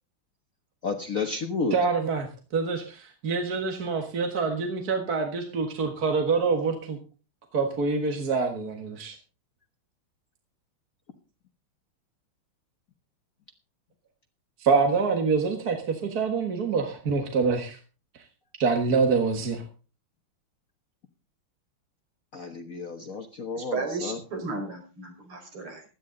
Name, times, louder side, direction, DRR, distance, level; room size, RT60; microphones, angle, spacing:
voice 1, 0.8-1.8 22.3-24.2, left 4 dB, 45° left, 5 dB, 1.5 m, -31 dB
voice 2, 1.7-2.3 2.5-7.0 7.5-9.2 14.6-17.8 18.6-19.6, right 4 dB, 45° right, 4 dB, 2.0 m, -26 dB
voice 3, 23.6-25.8, right 3 dB, 80° right, 3 dB, 5.8 m, -34 dB
16.5 x 12.5 x 3.9 m, 0.35 s
omnidirectional pair, 2.4 m